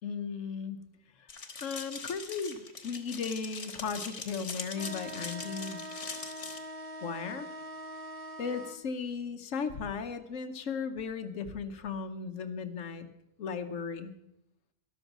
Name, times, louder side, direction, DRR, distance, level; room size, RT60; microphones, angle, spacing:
voice 1, 0.0-0.8 1.2-1.3 1.6-5.8 7.0-7.5 8.4-13.1 13.4-14.2, left 5 dB, 80° left, 7 dB, 1.2 m, -36 dB
sound 1, 1.3-6.6, left 4 dB, 55° left, 1.7 m, -42 dB
sound 2, 4.7-8.8, equal, 30° right, 0.8 m, -43 dB
13.5 x 12.0 x 6.0 m, 0.83 s
omnidirectional pair, 1.3 m